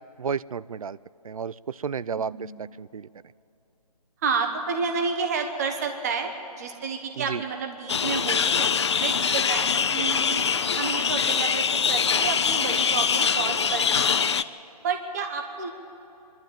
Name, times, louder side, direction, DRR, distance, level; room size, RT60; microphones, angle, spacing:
voice 1, 0.2-1.0 1.2-3.1 7.2-7.4, right 6 dB, 60° right, 19 dB, 0.4 m, -32 dB
voice 2, 2.2-2.6 4.2-6.3 6.6-8.7 9.0-10.5 10.8-14.3 14.8-15.7, right 5 dB, 25° right, 4 dB, 1.1 m, -30 dB
sound 1, 7.9-14.4, left 6 dB, 45° left, 0.5 m, -23 dB
24.5 x 12.0 x 8.9 m, 2.9 s
hypercardioid pair, 160°, 21 cm